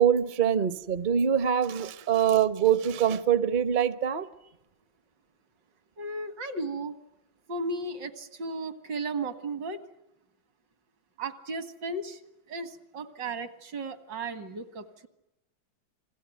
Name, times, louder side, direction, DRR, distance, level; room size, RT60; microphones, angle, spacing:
voice 1, 0.0-4.3, right 9 dB, 35° right, 13 dB, 0.9 m, -24 dB
voice 2, 6.0-7.0 7.5-9.8 11.2-12.2 12.5-15.1, right 2 dB, 70° right, 11 dB, 2.6 m, -35 dB
29.0 x 21.0 x 9.3 m, 0.92 s
omnidirectional pair, 2.1 m